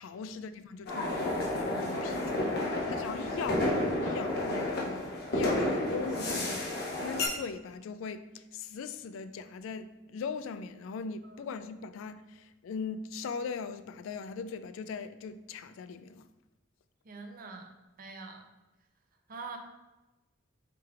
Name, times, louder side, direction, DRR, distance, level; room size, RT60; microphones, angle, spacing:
voice 1, 0.0-16.3, left 5 dB, 90° left, 0.3 m, -40 dB
sound 1, 0.8-7.3, left 1 dB, 55° left, 0.9 m, -31 dB
voice 2, 17.0-17.7 18.0-18.5 19.3-19.6, right 4 dB, 45° right, 0.6 m, -45 dB
4.8 x 4.7 x 2.4 m
head